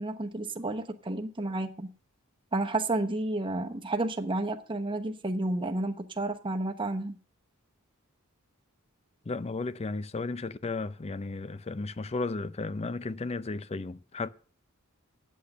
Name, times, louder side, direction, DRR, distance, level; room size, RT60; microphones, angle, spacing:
voice 1, 0.0-1.9 2.5-7.2, right 2 dB, 25° right, 1.0 m, -31 dB
voice 2, 9.3-14.3, left 3 dB, 30° left, 0.5 m, -34 dB
8.3 x 8.2 x 6.6 m
head